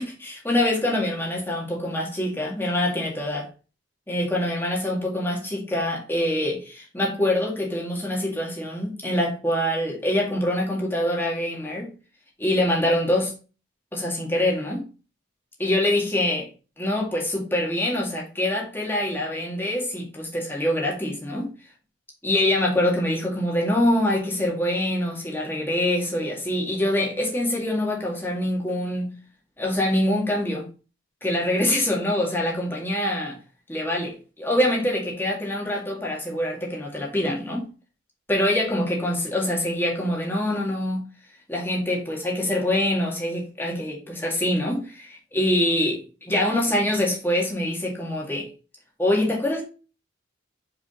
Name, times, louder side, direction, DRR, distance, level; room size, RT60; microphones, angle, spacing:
voice 1, 0.0-3.5 4.1-11.9 12.4-13.3 13.9-14.9 15.6-16.4 16.8-21.5 22.2-29.1 29.6-30.7 31.2-33.4 33.7-37.7 38.3-41.0 41.5-48.5 49.0-49.6, left 1 dB, 10° left, 2.0 m, -25 dB
5.0 x 4.9 x 3.8 m
head